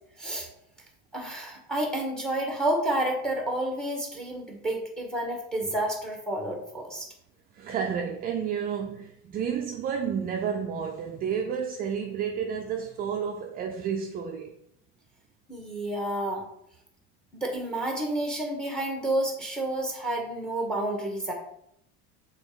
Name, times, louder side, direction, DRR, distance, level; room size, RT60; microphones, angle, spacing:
voice 1, 0.2-0.5 1.1-7.1 15.5-16.4 17.3-21.3, right 1 dB, ahead, 1.4 m, -30 dB
voice 2, 7.5-14.5, right 7 dB, 30° right, 0.5 m, -31 dB
6.2 x 3.9 x 4.9 m
cardioid pair, 155°, 30 cm